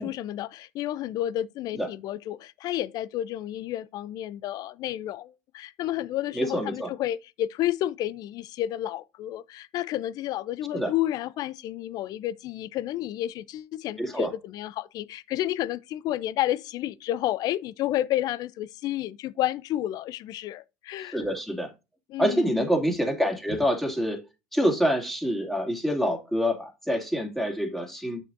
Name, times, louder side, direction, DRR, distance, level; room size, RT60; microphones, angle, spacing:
voice 1, 0.0-21.2 22.1-22.7, left 13 dB, 55° left, 0.5 m, -31 dB
voice 2, 6.3-6.9 10.7-10.9 14.0-14.3 21.0-21.7 22.2-24.2 24.5-28.2, equal, 5° left, 2.6 m, -26 dB
8.5 x 6.7 x 2.6 m
hypercardioid pair, 75°, 8 cm